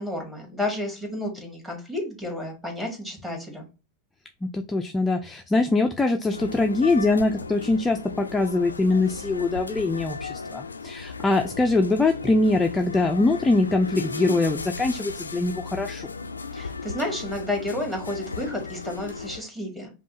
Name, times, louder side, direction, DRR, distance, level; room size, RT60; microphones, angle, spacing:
voice 1, 0.0-3.7 16.5-19.9, left 1 dB, 10° right, 0 dB, 1.6 m, -31 dB
voice 2, 4.4-16.1, left 2 dB, 15° left, 4 dB, 0.4 m, -23 dB
sound 1, 6.3-19.4, left 4 dB, 90° left, 0.3 m, -36 dB
5.2 x 2.3 x 2.9 m, 0.31 s
figure-of-eight pair, 90°, 0 cm